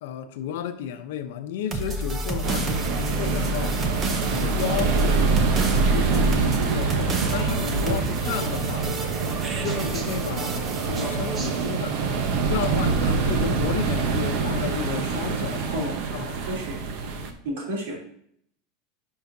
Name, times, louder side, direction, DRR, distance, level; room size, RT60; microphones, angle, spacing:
voice 1, 0.0-3.9 4.3-8.9 9.6-12.0 12.5-16.4, left 9 dB, 70° left, 0.8 m, -32 dB
sound 1, 1.7-11.7, right 2 dB, 20° right, 0.8 m, -28 dB
sound 2, 2.4-17.3, right 5 dB, 45° right, 0.9 m, -26 dB
voice 2, 17.4-18.0, right 1 dB, 75° right, 3.2 m, -30 dB
10.5 x 5.6 x 2.8 m
supercardioid pair, 175°, 0 cm